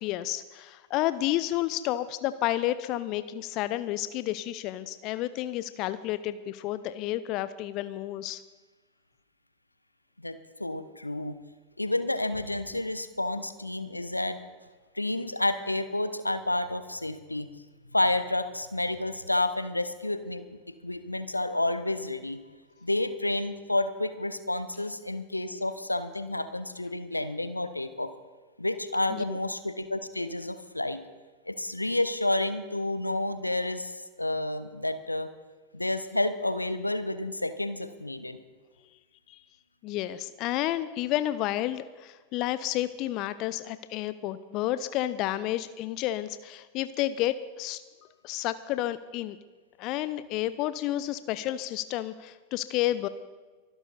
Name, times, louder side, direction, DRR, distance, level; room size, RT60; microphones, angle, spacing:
voice 1, 0.0-8.4 29.1-29.4 39.3-39.4 39.8-47.8 48.2-49.4 49.8-53.1, left 14 dB, 40° left, 14 dB, 0.6 m, -31 dB
voice 2, 10.2-11.4 11.8-14.4 14.9-17.5 17.9-22.4 22.8-28.1 28.6-31.0 31.5-35.3 35.7-38.4, left 2 dB, 85° left, 12 dB, 0.9 m, -30 dB
23.5 x 12.0 x 4.1 m, 1.3 s
figure-of-eight pair, 90°, 0 cm